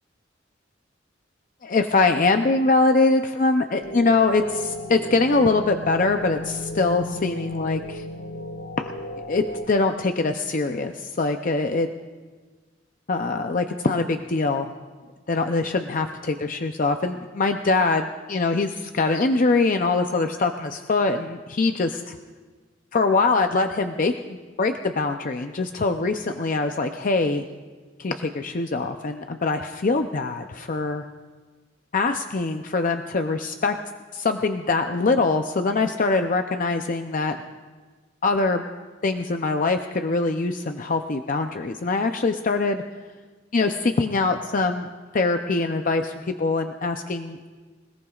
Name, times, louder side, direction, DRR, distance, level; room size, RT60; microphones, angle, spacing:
voice 1, 1.6-4.6 4.9-8.0 8.8-8.9 9.3-11.9 13.1-14.7 15.3-22.2 22.9-27.4 28.0-31.0 31.9-33.7 34.1-37.4 38.2-38.6 39.0-42.8 43.5-44.9 45.1-47.5, left 3 dB, 45° left, 6 dB, 0.5 m, -23 dB
sound 1, 3.8-9.7, equal, 75° left, 1.6 m, -34 dB
26.0 x 17.5 x 2.4 m, 1.4 s
head